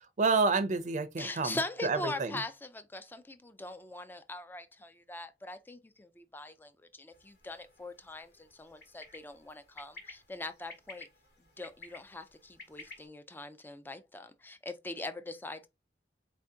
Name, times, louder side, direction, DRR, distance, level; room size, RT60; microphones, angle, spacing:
voice 1, 0.2-2.4, right 4 dB, 45° right, 0.5 m, -29 dB
voice 2, 1.2-11.1 11.6-15.7, left 2 dB, 10° left, 0.4 m, -42 dB
sound 1, 7.1-13.1, left 3 dB, 60° left, 1.5 m, -53 dB
4.3 x 2.7 x 3.5 m
head